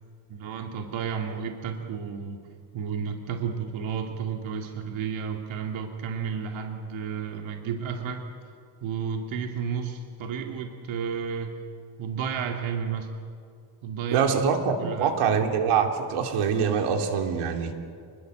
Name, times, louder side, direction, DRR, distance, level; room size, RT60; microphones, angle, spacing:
voice 1, 0.3-2.4 2.7-8.2 8.8-11.6 12.0-13.1 13.8-14.4 14.8-15.1, right 6 dB, 65° right, 3 dB, 2.4 m, -32 dB
voice 2, 14.1-17.7, right 6 dB, 90° right, 4 dB, 3.1 m, -24 dB
29.5 x 21.0 x 7.9 m, 2.3 s
cardioid pair, 160°, 50 cm